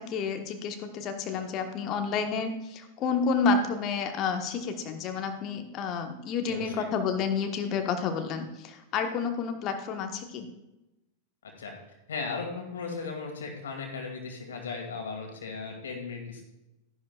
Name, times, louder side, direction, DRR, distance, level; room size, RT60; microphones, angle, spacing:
voice 1, 0.0-10.5, left 5 dB, 35° left, 6 dB, 1.3 m, -30 dB
voice 2, 6.5-6.8 11.6-11.7 12.1-16.4, left 4 dB, 65° left, 2 dB, 2.3 m, -36 dB
13.5 x 10.5 x 2.5 m, 0.94 s
figure-of-eight pair, 90°, 0 cm